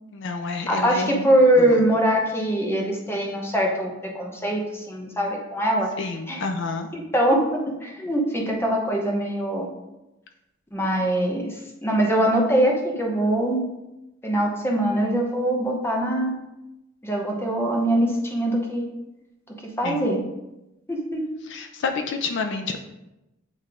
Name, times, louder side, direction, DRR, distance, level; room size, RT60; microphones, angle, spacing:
voice 1, 0.1-1.3 1.6-1.8 6.0-6.9 19.8-20.1 21.5-22.8, left 4 dB, 65° left, 5 dB, 0.5 m, -29 dB
voice 2, 0.7-5.9 6.3-6.4 6.9-9.7 10.7-13.6 14.2-16.3 17.0-18.9 19.5-20.2 20.9-21.3, right 1 dB, 10° left, 0 dB, 0.9 m, -23 dB
8.5 x 3.2 x 3.6 m, 0.95 s
head